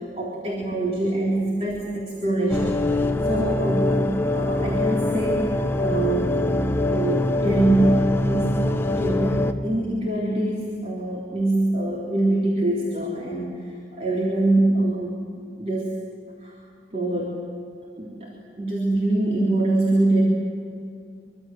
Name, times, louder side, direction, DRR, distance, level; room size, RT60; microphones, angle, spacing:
voice 1, 0.2-5.5 5.8-6.4 6.9-13.6 13.9-15.2 15.6-15.9 16.4-16.5 16.9-17.4 18.0-20.3, right 2 dB, 35° right, -3 dB, 3.7 m, -24 dB
sound 1, 2.5-9.5, left 2 dB, 15° left, 1.0 m, -23 dB
25.0 x 25.0 x 7.7 m, 2.4 s
head